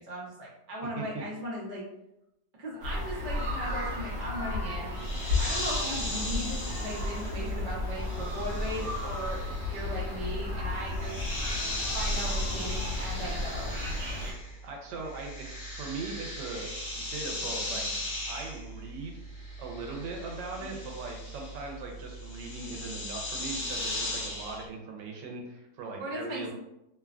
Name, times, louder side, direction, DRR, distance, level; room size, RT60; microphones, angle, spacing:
voice 1, 0.0-1.8 2.6-4.9 5.4-11.2 11.9-13.7 20.5-20.7 26.0-26.5, equal, 40° right, -6 dB, 0.7 m, -38 dB
sound 1, 2.8-14.3, left 2 dB, 65° right, 1.1 m, -33 dB
sound 2, 4.9-14.7 14.9-24.6, left 1 dB, 60° left, 0.8 m, -38 dB
voice 2, 14.6-17.8 18.3-19.2 19.6-26.5, right 3 dB, 90° right, 1 dB, 1.3 m, -40 dB
3.1 x 2.2 x 2.4 m, 0.86 s
omnidirectional pair, 1.9 m